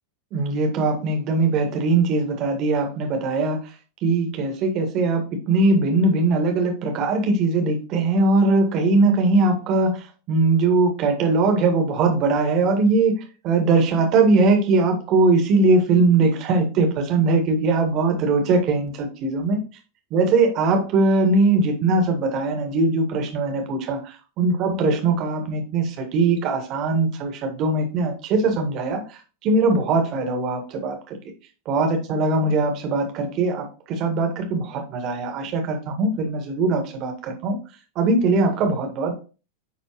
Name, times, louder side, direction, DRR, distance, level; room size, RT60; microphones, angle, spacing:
voice 1, 0.3-3.7 4.0-13.2 13.4-19.6 20.1-31.0 31.7-37.6 38.0-39.1, right 3 dB, 35° right, 4 dB, 1.9 m, -21 dB
9.8 x 3.9 x 3.2 m, 0.35 s
figure-of-eight pair, 90°, 0 cm